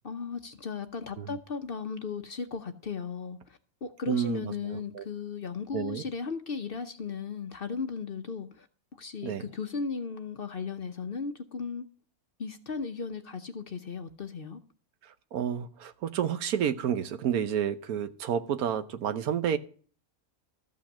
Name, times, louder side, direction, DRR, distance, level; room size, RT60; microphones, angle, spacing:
voice 1, 0.0-8.7 9.0-11.9 12.4-14.6, left 5 dB, 50° left, 0.8 m, -36 dB
voice 2, 4.1-5.0 5.7-6.0 9.2-9.4 15.0-19.6, right 9 dB, 80° right, 1.3 m, -30 dB
13.5 x 5.7 x 7.2 m
omnidirectional pair, 1.5 m